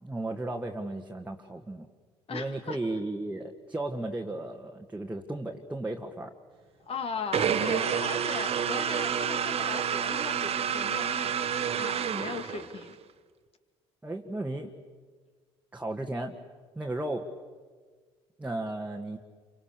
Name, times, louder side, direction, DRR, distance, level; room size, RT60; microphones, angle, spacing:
voice 1, 0.0-1.9 2.3-6.3 14.0-14.7 15.7-16.3 16.8-17.3 18.4-19.2, right 2 dB, 10° right, 1 dB, 1.8 m, -34 dB
voice 2, 2.3-2.8 6.8-11.3 11.8-13.0, left 5 dB, 45° left, 8 dB, 2.4 m, -38 dB
sound 1, 7.3-12.9, right 8 dB, 45° right, 1.4 m, -29 dB
28.0 x 25.0 x 6.8 m, 1.5 s
hypercardioid pair, 60°, 14 cm